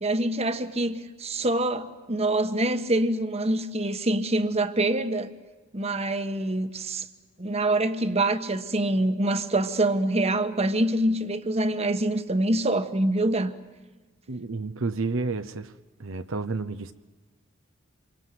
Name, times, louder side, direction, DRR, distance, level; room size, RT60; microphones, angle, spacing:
voice 1, 0.0-5.3 5.7-7.1 7.4-13.5, right 1 dB, 30° right, 1.3 m, -25 dB
voice 2, 14.3-15.7 16.0-16.9, right 3 dB, 65° right, 0.8 m, -30 dB
28.0 x 24.0 x 7.8 m
head